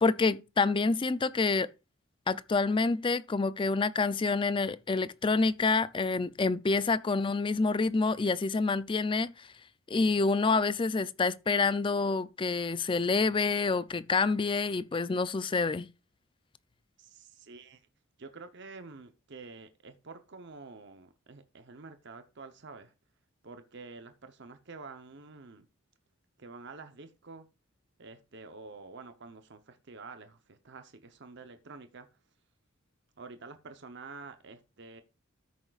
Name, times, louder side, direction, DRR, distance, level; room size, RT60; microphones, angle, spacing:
voice 1, 0.0-1.7 2.3-9.5 9.9-15.9, left 4 dB, 25° left, 0.4 m, -27 dB
voice 2, 17.0-17.8 18.2-22.9 23.4-25.7 26.4-27.5 28.0-32.1 33.2-35.0, right 4 dB, 55° right, 0.8 m, -48 dB
13.5 x 6.3 x 2.4 m
head